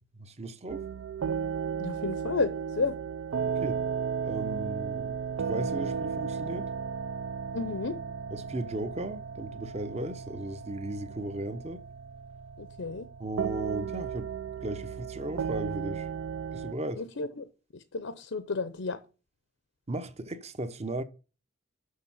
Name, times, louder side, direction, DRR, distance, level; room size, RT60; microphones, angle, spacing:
voice 1, 0.2-0.8 3.6-3.8 4.2-5.1 5.5-6.7 8.3-11.8 13.2-14.3 14.6-16.1 16.5-17.0 19.9-21.0, right 1 dB, 35° right, 0.8 m, -36 dB
sound 1, 0.7-16.7, right 6 dB, 85° right, 0.4 m, -35 dB
voice 2, 1.8-3.0 7.5-8.0 12.6-13.1 17.0-17.5 17.7-19.0, left 4 dB, 85° left, 0.7 m, -32 dB
6.6 x 6.2 x 5.7 m
head